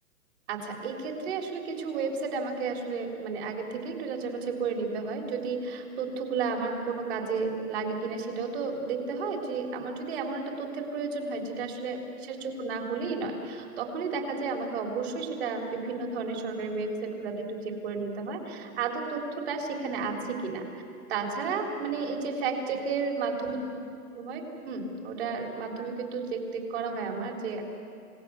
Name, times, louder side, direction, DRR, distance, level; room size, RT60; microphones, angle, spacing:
voice 1, 0.5-12.0 12.3-20.8 21.1-23.6 24.1-27.6, right 4 dB, 40° right, 2 dB, 3.7 m, -32 dB
28.0 x 18.0 x 7.0 m, 2.5 s
hypercardioid pair, 165°, 47 cm